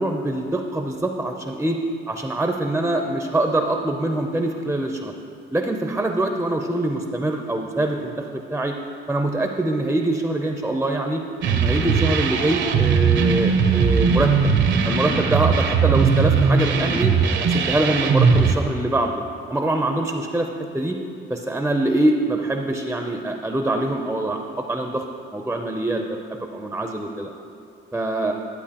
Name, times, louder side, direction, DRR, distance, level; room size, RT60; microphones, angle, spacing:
voice 1, 0.0-1.8 2.1-5.1 5.5-8.8 9.1-11.2 11.5-14.3 14.9-17.1 17.4-19.2 19.5-21.0 21.3-25.1 25.3-26.2 26.5-27.3 27.9-28.3, right 2 dB, 5° right, 3 dB, 0.5 m, -24 dB
sound 1, 11.4-18.5, right 5 dB, 70° right, 0.7 m, -19 dB
12.0 x 8.1 x 2.9 m, 2.5 s
cardioid pair, 90°, 20 cm